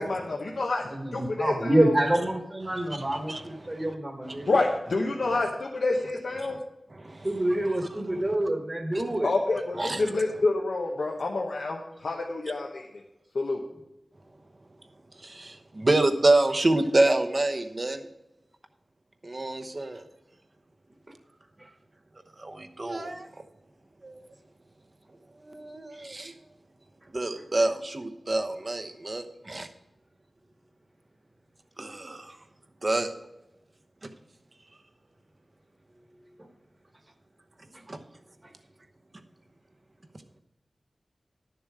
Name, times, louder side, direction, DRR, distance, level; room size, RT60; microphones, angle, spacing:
voice 1, 0.0-1.9 4.5-6.6 9.2-12.9 13.3-13.6, left 3 dB, 85° left, 0 dB, 1.0 m, -28 dB
voice 2, 0.9-4.6 7.2-9.3, right 1 dB, 25° right, 3 dB, 1.4 m, -27 dB
voice 3, 2.7-3.9 4.3-4.5 6.9-7.3 7.7-7.8 8.9-9.0 9.8-10.0 15.2-18.1 19.2-20.1 22.4-23.3 24.0-24.2 25.4-26.4 27.1-29.7 31.8-32.4 32.8-33.1 34.0-34.1 37.9-38.0, right 2 dB, 40° right, 7 dB, 0.9 m, -27 dB
11.0 x 7.0 x 4.8 m, 0.93 s
wide cardioid pair, 75°, 0 cm